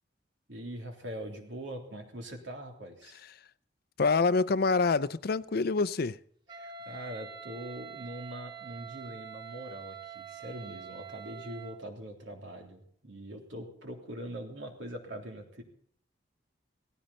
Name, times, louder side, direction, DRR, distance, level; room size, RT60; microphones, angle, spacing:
voice 1, 0.5-3.2 6.6-15.6, equal, 80° right, 3.5 m, -42 dB
voice 2, 4.0-6.2, left 4 dB, 55° left, 0.5 m, -26 dB
Wind instrument woodwind instrument, 6.5-11.8, right 7 dB, 25° right, 1.3 m, -45 dB
18.0 x 15.5 x 4.3 m
head